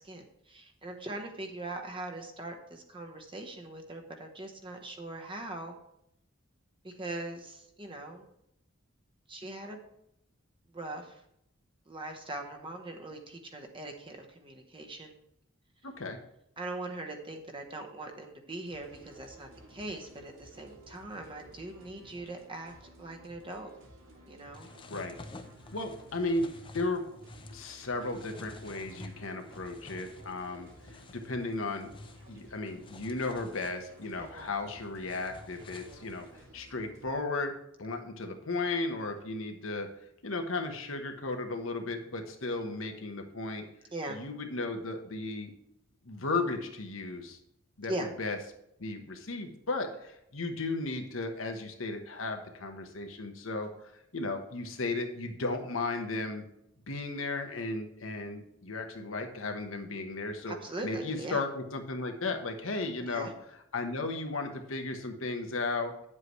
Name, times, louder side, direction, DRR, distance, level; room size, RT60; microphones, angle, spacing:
voice 1, 0.0-5.8 6.8-8.3 9.3-9.8 10.7-11.2 11.9-15.1 16.6-22.7 23.0-23.7 24.2-24.7 34.2-34.5 35.7-36.0 43.9-44.2 47.9-48.1 60.5-61.4 63.1-63.3, right 2 dB, 25° right, 4 dB, 1.0 m, -41 dB
voice 2, 15.8-16.2 24.9-25.2 25.7-26.5 26.7-27.0 27.5-31.9 32.3-37.5 37.8-39.9 40.2-43.7 44.1-45.5 46.0-47.4 47.8-48.4 48.8-56.4 56.9-60.6 60.8-63.3 63.7-66.1, left 3 dB, 80° left, 4 dB, 1.1 m, -35 dB
sound 1, 18.6-37.1, right 1 dB, 75° right, 2.7 m, -56 dB
sound 2, 24.5-36.4, left 2 dB, 25° left, 0.6 m, -51 dB
9.7 x 7.5 x 3.1 m, 0.78 s
head